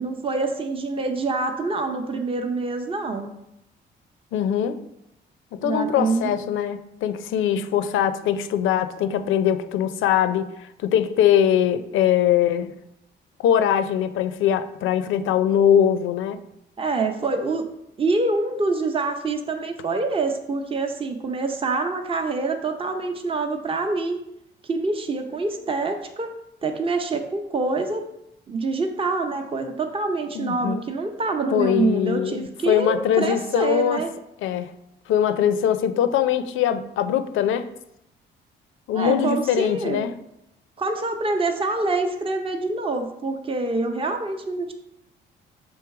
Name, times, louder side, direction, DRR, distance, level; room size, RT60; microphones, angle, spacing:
voice 1, 0.0-3.3 5.6-6.3 16.8-17.6 18.0-24.2 24.6-26.3 26.6-28.0 28.5-34.1 38.9-40.0 40.8-44.7, right 3 dB, 25° right, 4 dB, 0.7 m, -26 dB
voice 2, 4.3-4.8 5.5-12.7 13.4-16.4 30.3-30.8 31.5-34.0 34.4-34.7 35.1-37.7 38.9-40.2, left 9 dB, 80° left, 11 dB, 0.5 m, -22 dB
6.2 x 3.2 x 4.7 m, 0.82 s
cardioid pair, 90°, 20 cm